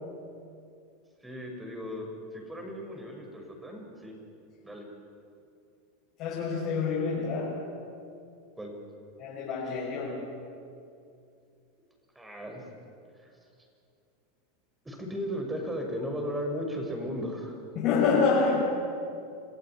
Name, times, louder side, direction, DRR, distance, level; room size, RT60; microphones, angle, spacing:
voice 1, 1.2-4.1 4.6-4.8 8.6-8.7 12.1-12.6 13.2-13.3 14.8-17.6, equal, 10° right, 2 dB, 6.4 m, -36 dB
voice 2, 6.2-7.7 9.2-10.3 17.7-18.6, left 4 dB, 50° left, -4 dB, 6.5 m, -27 dB
27.0 x 15.5 x 9.6 m, 2.5 s
hypercardioid pair, 95°, 0 cm